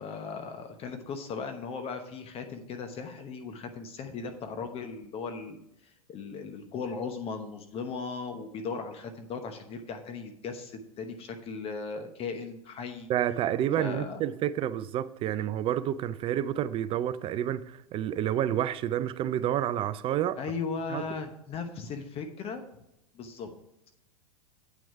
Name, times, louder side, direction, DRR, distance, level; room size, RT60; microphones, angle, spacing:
voice 1, 0.0-5.6 5.8-13.1 13.8-14.2 20.4-22.6 23.1-23.5, left 5 dB, 30° left, 1.0 m, -37 dB
voice 2, 13.1-20.4 20.9-21.0, right 11 dB, 30° right, 0.5 m, -29 dB
8.7 x 6.1 x 4.7 m
hypercardioid pair, 95°, 19 cm